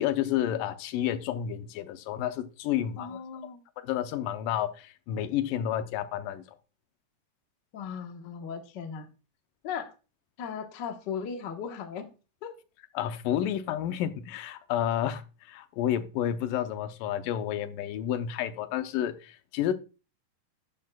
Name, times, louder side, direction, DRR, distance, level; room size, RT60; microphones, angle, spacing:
voice 1, 0.0-3.2 3.8-6.4 13.0-19.7, left 11 dB, 85° left, 2.4 m, -30 dB
voice 2, 3.0-3.6 7.7-9.1 9.6-9.9 10.4-12.1 12.4-12.5, left 7 dB, 65° left, 1.0 m, -37 dB
12.0 x 9.3 x 2.3 m
omnidirectional pair, 3.8 m